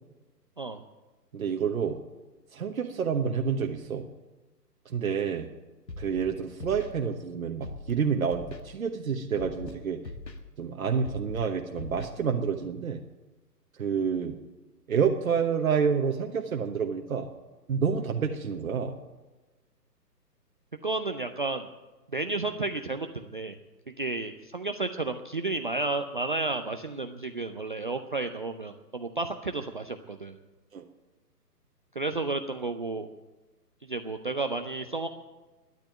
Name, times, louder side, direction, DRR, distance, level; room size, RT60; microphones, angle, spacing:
voice 1, 1.3-2.0 2.5-4.0 4.8-5.5 6.0-10.0 10.6-13.0 13.8-14.3 14.9-17.3 17.7-18.9 30.7-30.8, right 6 dB, 55° right, 3 dB, 1.2 m, -28 dB
Scratching (performance technique), 5.9-6.2 6.6-6.9 7.6-7.9 8.3-8.6 9.3-9.7 10.0-10.4 11.0-11.4 11.8-12.1, left 2 dB, 80° left, 2.0 m, -40 dB
voice 2, 20.8-21.7 22.1-23.6 24.0-30.4 32.0-33.1 33.8-35.1, right 3 dB, 35° right, 6 dB, 0.5 m, -32 dB
12.0 x 10.0 x 8.9 m, 1.2 s
figure-of-eight pair, 135°, 49 cm